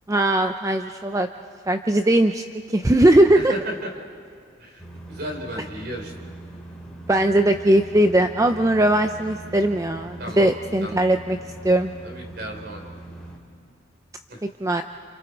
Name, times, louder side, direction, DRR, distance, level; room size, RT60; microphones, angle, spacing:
voice 1, 0.1-1.3 1.7-2.4 2.7-3.5 7.1-11.4 11.6-11.9 14.6-14.8, right 1 dB, 15° right, 7 dB, 0.5 m, -19 dB
voice 2, 3.3-3.9 4.6-6.1 10.2-10.5 10.8-11.0 12.0-12.8 14.3-14.4, equal, 55° right, 3 dB, 3.4 m, -34 dB
sound 1, 4.8-13.4, right 2 dB, 5° left, 2.9 m, -41 dB
29.0 x 28.5 x 4.6 m, 2.2 s
head